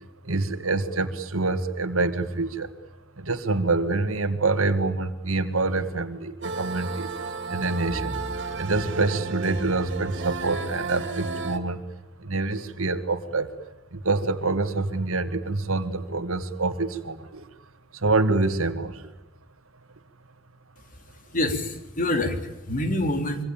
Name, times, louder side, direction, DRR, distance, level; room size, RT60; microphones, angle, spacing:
voice 1, 0.2-2.7 3.2-7.1 7.5-8.1 8.6-11.8 12.2-13.5 13.9-17.4 18.0-19.1, right 3 dB, 85° right, 7 dB, 1.9 m, -26 dB
sound 1, 6.4-11.6, right 4 dB, 60° right, 2.9 m, -33 dB
voice 2, 20.9-23.4, left 1 dB, 40° left, 6 dB, 3.6 m, -27 dB
26.0 x 24.5 x 8.7 m, 0.94 s
head